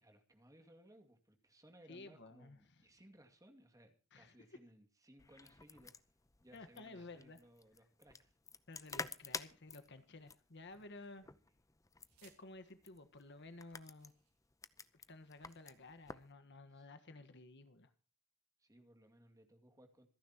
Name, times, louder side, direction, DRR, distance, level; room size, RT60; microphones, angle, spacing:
voice 1, 0.0-5.9 6.4-8.4 11.3-11.4 16.7-16.9 18.6-20.1, right 1 dB, 15° right, 4 dB, 2.3 m, -63 dB
voice 2, 1.9-2.9 4.1-4.5 6.5-7.4 8.7-11.3 12.2-14.1 15.1-17.9, left 2 dB, 55° left, 10 dB, 1.4 m, -54 dB
sound 1, 5.2-16.3, left 4 dB, 15° left, 0.7 m, -51 dB
sound 2, 10.9-11.5 12.0-12.4 13.2-13.3 13.7-14.5 15.1-15.8, right 10 dB, 85° right, 4.5 m, -71 dB
26.5 x 10.5 x 3.0 m, 0.37 s
head